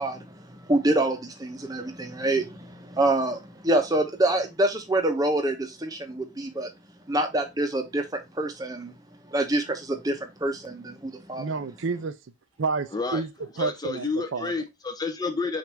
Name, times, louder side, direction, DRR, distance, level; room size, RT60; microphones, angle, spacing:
voice 1, 0.0-6.7 7.1-8.9 9.3-11.5, right 1 dB, 15° right, 0.7 m, -26 dB
voice 2, 11.4-12.1 12.6-13.3 13.6-14.5, right 4 dB, 65° right, 0.5 m, -29 dB
voice 3, 13.6-15.6, left 3 dB, 20° left, 0.5 m, -30 dB
6.1 x 2.6 x 3.3 m
head